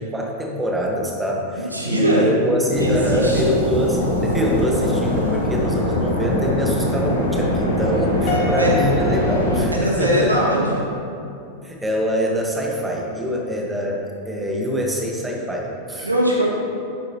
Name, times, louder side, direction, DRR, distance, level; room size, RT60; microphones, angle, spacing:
voice 1, 0.0-10.4 11.6-16.1, equal, 10° right, -1 dB, 1.5 m, -24 dB
voice 2, 1.7-2.2 2.8-3.4 8.3-8.7 9.7-10.8 16.0-16.4, equal, 85° right, -4 dB, 1.9 m, -20 dB
sound 1, 2.7-9.7, left 1 dB, 80° left, 1.7 m, -22 dB
Piano, 8.3-10.5, left 2 dB, 45° left, 1.2 m, -30 dB
11.5 x 8.7 x 3.0 m, 2.7 s
figure-of-eight pair, 90°, 0 cm